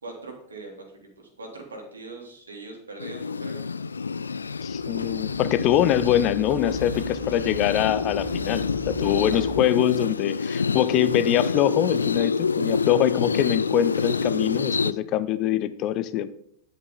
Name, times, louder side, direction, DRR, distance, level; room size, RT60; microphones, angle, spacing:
voice 1, 0.0-3.6, right 2 dB, 75° right, 0 dB, 3.1 m, -41 dB
sound 1, 3.0-14.9, left 5 dB, 75° left, 0.4 m, -27 dB
voice 2, 4.6-16.3, left 12 dB, 40° left, 14 dB, 0.6 m, -24 dB
sound 2, 4.6-9.6, right 3 dB, 20° right, 1.4 m, -41 dB
11.0 x 8.2 x 3.7 m, 0.69 s
figure-of-eight pair, 90°, 0 cm